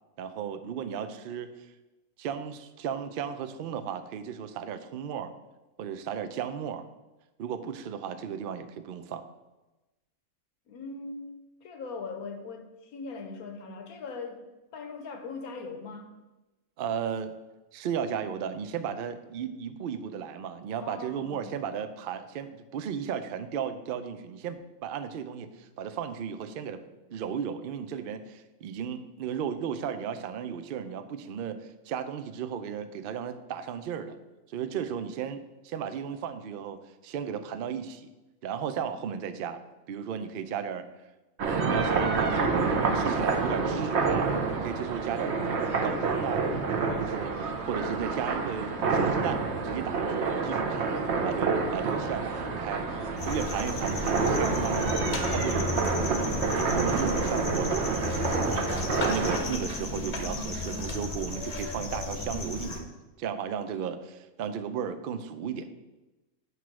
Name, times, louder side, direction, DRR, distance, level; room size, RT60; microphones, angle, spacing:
voice 1, 0.2-1.5 2.2-5.3 5.8-6.9 7.4-9.2 16.8-17.3 17.7-26.8 27.1-34.2 34.5-38.1 38.4-39.6 39.9-40.9 41.4-42.5 42.9-45.3 45.8-46.4 47.0-54.9 55.3-55.7 56.1-62.9 63.2-65.7, right 7 dB, 80° right, 0.5 m, -35 dB
voice 2, 10.7-11.3 11.6-14.5 14.7-16.1 20.8-21.6, left 4 dB, 85° left, 1.3 m, -40 dB
sound 1, 41.4-59.4, right 4 dB, 55° right, 1.0 m, -28 dB
sound 2, 53.2-62.8, left 3 dB, 35° left, 0.7 m, -34 dB
8.2 x 3.1 x 6.0 m
omnidirectional pair, 1.5 m